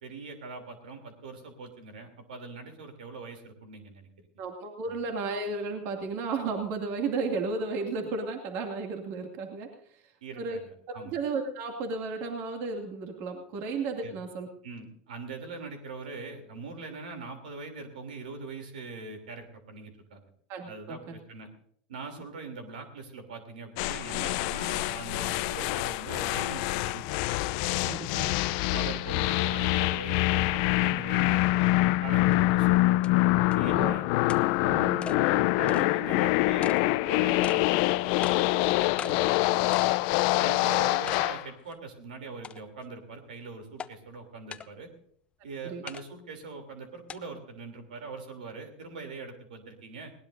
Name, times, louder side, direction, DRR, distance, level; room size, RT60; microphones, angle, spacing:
voice 1, 0.0-4.3 4.9-5.0 10.2-11.2 14.0-14.1 14.6-20.2 20.6-21.5 21.9-27.2 27.9-28.3 28.7-31.7 32.0-33.0 33.4-34.1 35.1-40.0 40.4-44.9 45.4-50.1, right 4 dB, 90° right, 6 dB, 3.2 m, -42 dB
voice 2, 4.4-10.0 10.4-10.6 11.0-14.5 20.5-21.2 27.9-28.3 33.7-34.0 34.6-35.2 38.5-38.7 39.0-39.1 45.6-45.8, right 4 dB, 55° right, 3 dB, 2.3 m, -34 dB
sound 1, 23.8-41.5, left 18 dB, 60° left, 0.5 m, -25 dB
sound 2, 32.3-32.4 33.0-33.1 33.5-33.6 34.3-34.4 35.0-35.2 35.7-35.9 36.6-36.8 37.4-37.6 38.2-38.4 39.0-39.2 39.7-40.0 40.4-40.5 41.1-41.3 41.7-41.8 42.4-42.8 43.8-43.9 44.5-44.7 45.9-46.0 47.1-47.2, left 7 dB, 25° left, 0.8 m, -38 dB
20.0 x 18.5 x 2.7 m, 0.64 s
supercardioid pair, 110°, 5 cm